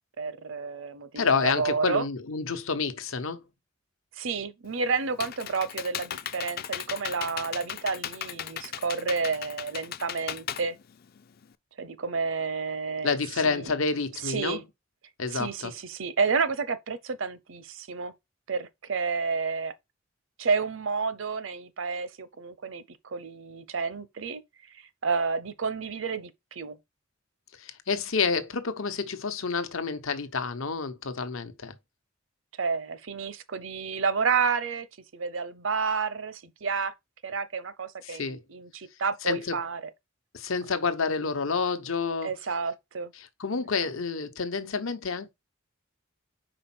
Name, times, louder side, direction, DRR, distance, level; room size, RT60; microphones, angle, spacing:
voice 1, 0.2-2.1 4.2-10.8 11.8-13.2 13.4-13.7 14.2-14.6 15.3-18.1 18.5-19.7 20.4-24.4 24.7-26.8 32.6-34.9 35.1-36.9 37.2-39.8 42.2-43.1, right 5 dB, 70° right, 0.7 m, -30 dB
voice 2, 1.2-3.4 13.0-14.6 15.2-15.7 27.6-31.7 38.0-38.4 39.2-39.6 40.3-42.3 43.4-45.3, left 4 dB, 85° left, 0.9 m, -29 dB
Computer keyboard, 4.7-11.5, left 10 dB, 50° left, 0.4 m, -37 dB
5.0 x 4.1 x 5.9 m
head